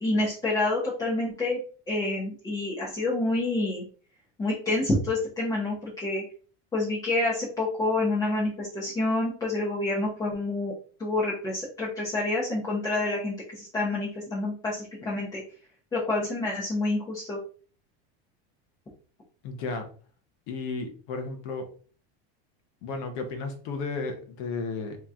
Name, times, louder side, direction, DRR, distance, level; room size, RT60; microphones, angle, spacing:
voice 1, 0.0-1.6 1.9-3.8 4.4-6.2 6.7-10.7 11.0-15.4 15.9-17.4, left 2 dB, 10° left, -6 dB, 0.8 m, -28 dB
voice 2, 19.4-19.9 20.5-21.7 22.8-25.0, left 4 dB, 40° left, 5 dB, 0.7 m, -33 dB
3.6 x 2.9 x 3.5 m, 0.42 s
supercardioid pair, 170°, 32 cm